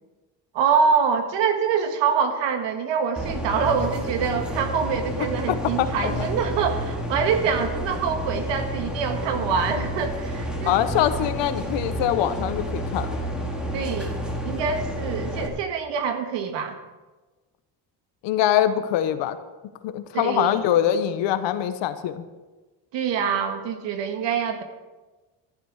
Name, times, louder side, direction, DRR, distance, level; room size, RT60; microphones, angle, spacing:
voice 1, 0.5-10.8 13.7-14.1 14.4-16.8 20.1-20.6 22.9-24.6, right 6 dB, 85° right, 7 dB, 1.7 m, -25 dB
sound 1, 3.2-15.5, equal, ahead, 2.3 m, -30 dB
voice 2, 5.2-6.3 10.6-13.1 18.2-19.4 19.8-22.2, left 11 dB, 85° left, 11 dB, 1.1 m, -24 dB
14.5 x 11.5 x 4.9 m, 1.2 s
cardioid pair, 130°, 42 cm